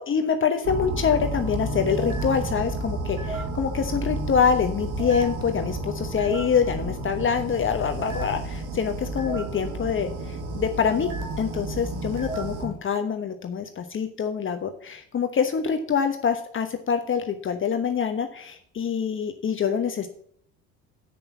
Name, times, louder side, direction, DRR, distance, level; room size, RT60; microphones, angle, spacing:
voice 1, 0.1-11.1 11.4-20.1, left 7 dB, 35° left, 7 dB, 1.1 m, -25 dB
sound 1, 0.6-12.7, right 2 dB, 60° right, 2.4 m, -31 dB
8.0 x 6.8 x 7.1 m, 0.65 s
supercardioid pair, 80°, 35 cm